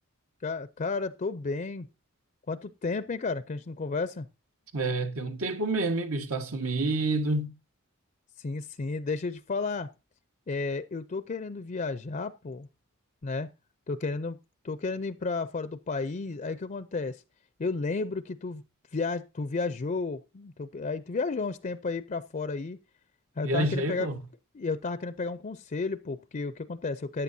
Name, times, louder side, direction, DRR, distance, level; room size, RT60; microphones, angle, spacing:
voice 1, 0.4-1.9 2.5-4.3 8.4-9.9 10.5-12.7 13.2-13.5 13.9-14.4 14.6-17.2 17.6-18.6 18.9-22.8 23.4-24.1 24.5-27.2, left 3 dB, 35° left, 0.5 m, -32 dB
voice 2, 4.7-7.5 23.4-24.1, right 2 dB, 85° right, 1.6 m, -28 dB
14.5 x 10.0 x 2.7 m
head